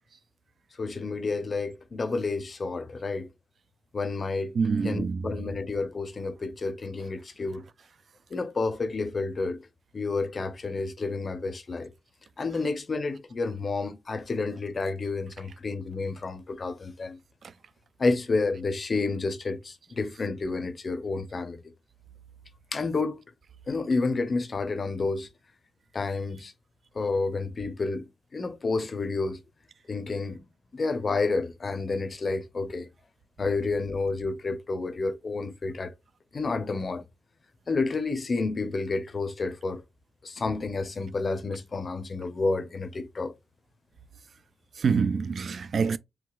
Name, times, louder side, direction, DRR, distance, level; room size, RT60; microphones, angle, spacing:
voice 1, 0.8-3.3 3.9-4.5 4.8-7.6 8.3-9.6 9.9-11.9 12.4-17.2 18.0-21.6 22.7-23.2 23.7-25.3 25.9-26.5 26.9-28.0 28.3-29.4 29.9-30.4 30.7-32.9 33.4-35.9 36.3-37.0 37.7-39.8 40.2-43.3, left 3 dB, 35° left, 0.6 m, -30 dB
voice 2, 4.5-5.3 44.8-46.0, right 5 dB, 45° right, 0.3 m, -26 dB
4.7 x 3.6 x 2.3 m
wide cardioid pair, 170°, 0 cm